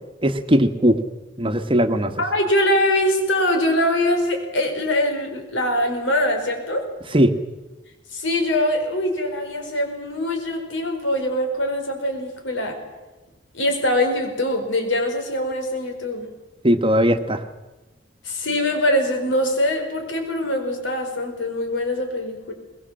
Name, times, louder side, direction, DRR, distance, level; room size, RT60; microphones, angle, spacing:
voice 1, 0.2-1.0 1.4-2.1 7.1-7.3 16.6-17.4, equal, 25° right, 7 dB, 1.3 m, -18 dB
voice 2, 2.2-6.9 8.1-12.8 13.5-16.3 18.2-22.5, left 1 dB, 75° left, 4 dB, 5.1 m, -23 dB
22.5 x 21.0 x 7.7 m, 1.1 s
head